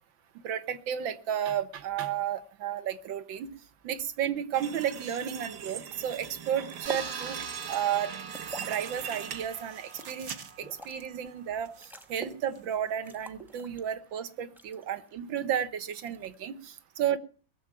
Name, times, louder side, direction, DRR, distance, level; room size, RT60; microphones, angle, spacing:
voice 1, 0.4-3.5 3.8-7.4 7.7-8.3 8.6-17.2, right 9 dB, 85° right, 12 dB, 1.8 m, -33 dB
sound 1, 4.5-11.0 11.5-12.0 12.4-12.6 13.1-13.2, right 8 dB, 60° right, 1.7 m, -41 dB
sound 2, 5.8-6.0 6.3-7.3 7.8-8.9 9.2-11.1 11.5-11.6 11.8-12.4 12.7-12.8 13.1-14.1 14.6-15.1 16.0-16.5, right 1 dB, ahead, 0.6 m, -45 dB
sound 3, 6.9-11.7, right 5 dB, 40° right, 1.2 m, -44 dB
19.0 x 7.2 x 8.8 m, 0.40 s
omnidirectional pair, 2.1 m